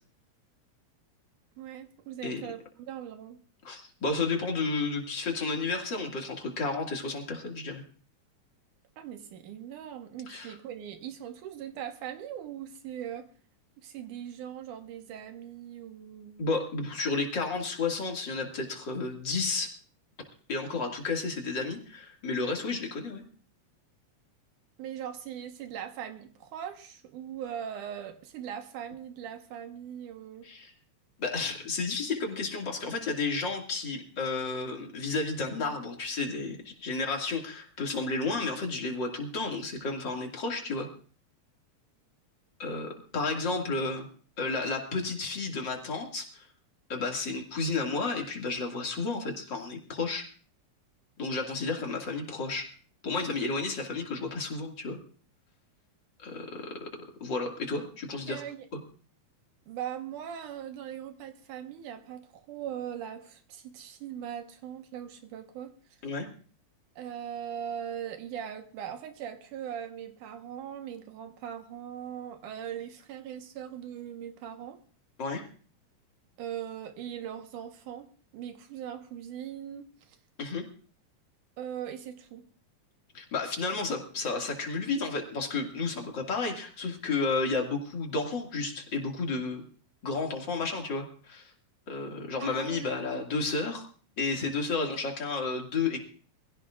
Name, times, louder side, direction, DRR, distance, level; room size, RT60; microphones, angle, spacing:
voice 1, 1.6-3.4 9.0-13.3 13.8-16.5 24.8-30.5 43.3-43.8 58.3-58.7 59.7-65.7 67.0-74.8 76.4-78.1 78.3-80.2 81.6-82.4 92.4-93.3, right 9 dB, 85° right, 6 dB, 2.8 m, -40 dB
voice 2, 3.6-7.8 10.3-10.5 16.4-19.7 20.5-23.2 30.4-30.7 31.2-40.9 42.6-44.1 44.4-46.5 46.9-50.2 51.2-52.7 53.0-55.0 56.2-58.4 58.7-58.8 66.0-66.3 75.2-75.5 80.4-80.6 83.1-89.6 90.0-91.5 91.9-93.9 94.2-96.0, left 3 dB, 40° left, 1 dB, 2.6 m, -32 dB
24.0 x 16.0 x 2.5 m, 0.42 s
omnidirectional pair, 3.5 m